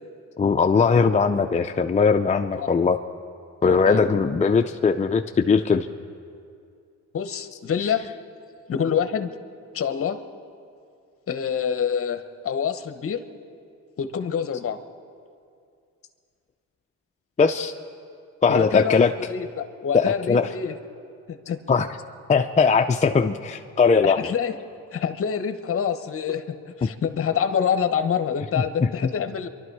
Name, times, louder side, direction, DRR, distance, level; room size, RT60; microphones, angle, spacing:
voice 1, 0.4-3.0 3.6-5.9 17.4-17.7 18.4-19.1 19.9-20.5 21.7-21.9 22.3-24.2, left 5 dB, 25° left, 5 dB, 0.5 m, -20 dB
voice 2, 3.6-4.1 7.1-8.0 8.7-9.3 9.7-10.2 11.3-13.2 14.0-14.8 18.5-20.7 21.3-21.6 24.0-24.6 24.9-29.5, left 7 dB, 45° left, 10 dB, 1.1 m, -26 dB
26.0 x 12.0 x 4.7 m, 2.4 s
cardioid pair, 90°, 30 cm